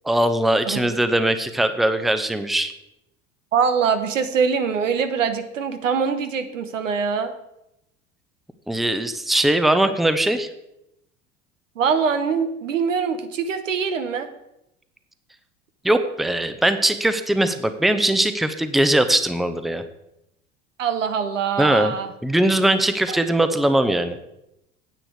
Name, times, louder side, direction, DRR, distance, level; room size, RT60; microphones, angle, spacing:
voice 1, 0.0-2.7 8.7-10.5 15.8-19.8 21.6-21.9 22.2-24.2, right 1 dB, ahead, 10 dB, 0.7 m, -20 dB
voice 2, 3.5-7.3 11.8-14.3 20.8-22.1 23.1-23.2, right 6 dB, 85° right, 9 dB, 1.0 m, -23 dB
9.4 x 8.7 x 4.9 m, 0.85 s
hypercardioid pair, 75°, 37 cm